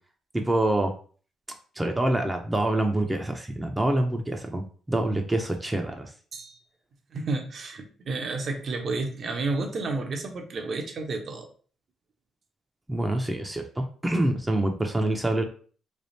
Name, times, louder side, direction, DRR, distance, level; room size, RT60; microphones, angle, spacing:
voice 1, 0.3-0.9 1.8-4.6 4.9-6.1 12.9-15.4, right 1 dB, 15° right, 3 dB, 0.7 m, -26 dB
voice 2, 7.1-11.5, right 3 dB, 50° right, 3 dB, 0.9 m, -31 dB
3.4 x 2.4 x 4.1 m, 0.42 s
cardioid pair, 90°, 0 cm